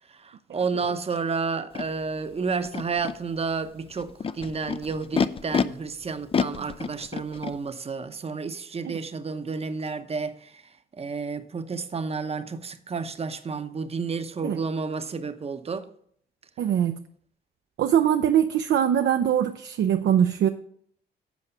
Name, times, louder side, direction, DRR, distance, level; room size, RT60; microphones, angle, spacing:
voice 1, 0.1-10.6 11.0-15.9, right 5 dB, 30° right, 0.8 m, -31 dB
Animal, 1.7-1.8 2.6-3.1 4.0-5.6 6.3-7.5, left 6 dB, 30° left, 0.4 m, -27 dB
voice 2, 16.6-17.0 17.8-20.5, right 9 dB, 65° right, 0.5 m, -22 dB
8.3 x 4.8 x 6.7 m
cardioid pair, 90°, 20 cm